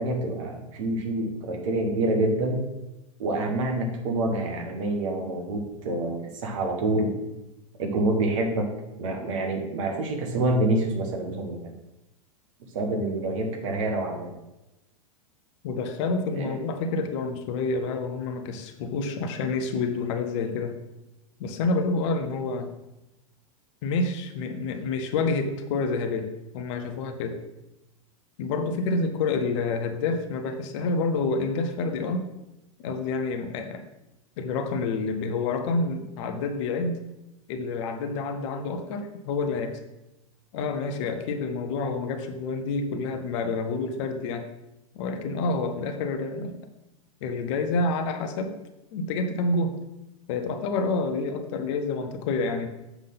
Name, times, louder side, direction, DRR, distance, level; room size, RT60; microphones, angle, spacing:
voice 1, 0.0-2.6 3.2-7.2 7.8-8.7 9.0-11.6 12.7-14.3 16.3-16.6, right 2 dB, 65° right, 3 dB, 1.7 m, -27 dB
voice 2, 15.6-20.8 21.4-22.7 23.8-27.4 28.4-32.3 32.8-33.8 34.4-37.0 37.5-39.8 40.5-44.4 44.9-46.6 47.2-48.5 48.9-49.7 50.3-52.7, left 3 dB, 55° left, 6 dB, 1.0 m, -28 dB
7.1 x 3.7 x 5.7 m, 0.93 s
hypercardioid pair, 95°, 18 cm